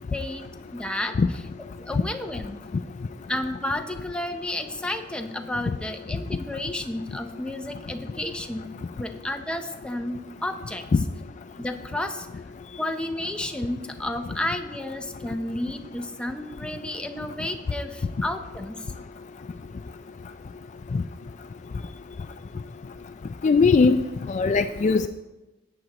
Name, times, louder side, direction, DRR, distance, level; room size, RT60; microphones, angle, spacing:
voice 1, 0.1-0.5 0.7-1.4 1.8-2.6 3.3-8.7 9.0-10.8 11.6-12.3 12.8-18.9, left 1 dB, 5° left, 5 dB, 0.6 m, -32 dB
voice 2, 23.4-24.0 24.3-25.1, left 4 dB, 40° left, 9 dB, 0.3 m, -19 dB
14.0 x 8.7 x 3.0 m, 1.1 s
head